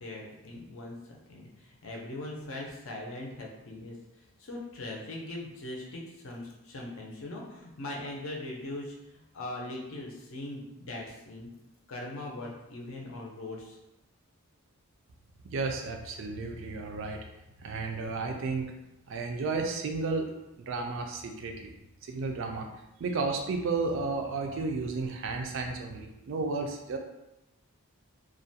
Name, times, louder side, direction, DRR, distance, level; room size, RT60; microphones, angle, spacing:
voice 1, 0.0-4.0 4.4-11.5 11.9-13.8, left 2 dB, 60° left, -1 dB, 0.5 m, -40 dB
voice 2, 15.5-17.3 17.6-18.7 19.1-20.3 20.6-21.7 22.0-22.7 23.0-27.0, right 3 dB, 55° right, 3 dB, 0.3 m, -32 dB
2.4 x 2.2 x 2.7 m, 0.91 s
head